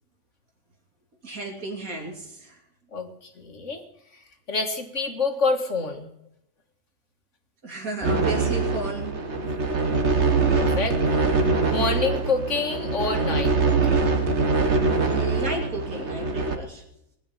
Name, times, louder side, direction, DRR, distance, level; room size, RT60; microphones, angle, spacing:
voice 1, 1.2-2.6 7.6-9.2 15.0-16.8, right 2 dB, 80° right, 1 dB, 3.3 m, -33 dB
voice 2, 3.4-3.8 4.5-6.1 10.6-11.0 11.7-14.0, left 4 dB, 60° left, 4 dB, 2.2 m, -27 dB
sound 1, 8.0-16.6, right 3 dB, 55° right, 1.7 m, -23 dB
20.0 x 7.1 x 9.9 m, 0.81 s
omnidirectional pair, 1.4 m